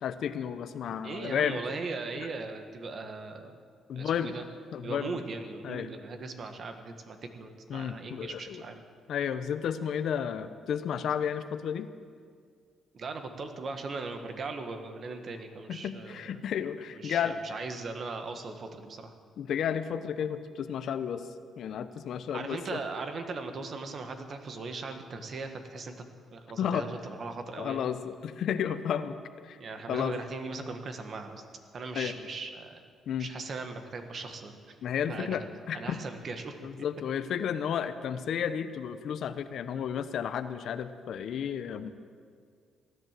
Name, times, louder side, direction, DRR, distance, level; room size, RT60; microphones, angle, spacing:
voice 1, 0.0-1.6 3.9-4.4 4.7-5.2 5.6-5.9 7.7-8.6 9.1-11.9 15.7-17.4 19.4-21.2 21.6-22.8 26.6-26.9 27.6-29.2 29.4-29.6 29.9-30.1 31.9-32.1 33.1-33.3 34.8-36.0 36.6-41.9, left 8 dB, 70° left, 11 dB, 0.8 m, -32 dB
voice 2, 0.9-3.6 4.0-4.4 4.8-8.8 12.9-16.3 17.0-19.1 22.3-26.1 26.3-27.9 29.6-31.4 31.7-32.8 33.2-34.8 35.1-35.4 35.7-36.5, right 3 dB, 50° right, 6 dB, 1.6 m, -39 dB
16.0 x 11.0 x 7.5 m, 2.1 s
cardioid pair, 90°, 0 cm